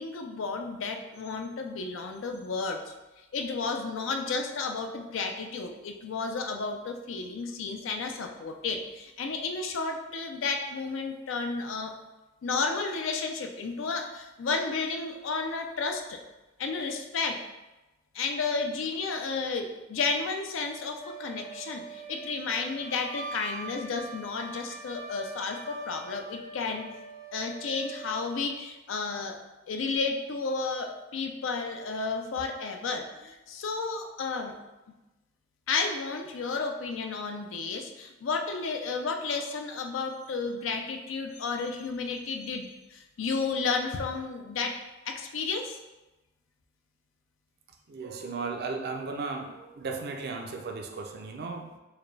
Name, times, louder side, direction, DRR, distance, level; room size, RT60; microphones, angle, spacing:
voice 1, 0.0-2.9 3.3-11.9 12.4-16.2 16.6-17.4 18.1-26.9 27.3-29.4 29.7-34.5 35.7-44.8 45.1-45.8, left 4 dB, 75° left, 4 dB, 0.4 m, -32 dB
Wind instrument woodwind instrument, 21.0-28.4, right 4 dB, 80° right, 1.4 m, -43 dB
voice 2, 47.9-51.8, right 4 dB, 55° right, 2 dB, 0.5 m, -35 dB
4.7 x 2.2 x 3.2 m, 1.0 s
head